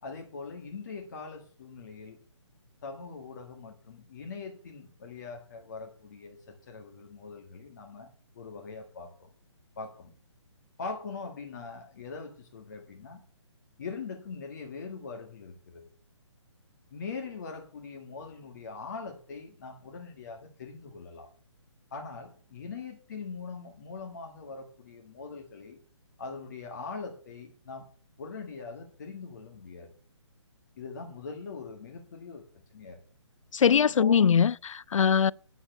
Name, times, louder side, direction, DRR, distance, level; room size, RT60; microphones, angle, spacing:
voice 1, 0.0-2.2 2.8-8.1 8.3-9.3 9.8-10.1 10.8-13.2 13.8-15.8 16.9-21.3 21.9-25.8 26.2-27.9 28.2-29.9 30.8-32.4 32.7-33.0 33.8-34.3, left 4 dB, 35° left, 1.5 m, -42 dB
voice 2, 33.5-35.3, left 7 dB, 90° left, 0.4 m, -22 dB
9.2 x 7.1 x 6.5 m
hypercardioid pair, 170°, 16 cm